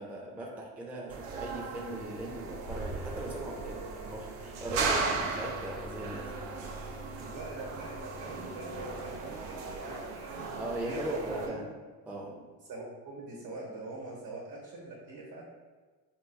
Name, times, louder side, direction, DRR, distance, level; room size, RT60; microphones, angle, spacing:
voice 1, 0.0-6.4 6.7-7.1 10.6-11.6 12.1-12.5, right 1 dB, 5° right, -3 dB, 0.4 m, -39 dB
sound 1, 1.1-11.5, right 4 dB, 75° right, 0.6 m, -37 dB
voice 2, 4.9-5.3 7.2-10.4 10.8-11.6 12.7-15.4, right 2 dB, 45° right, -4 dB, 1.0 m, -43 dB
3.7 x 2.7 x 2.2 m, 1.4 s
supercardioid pair, 80°, 44 cm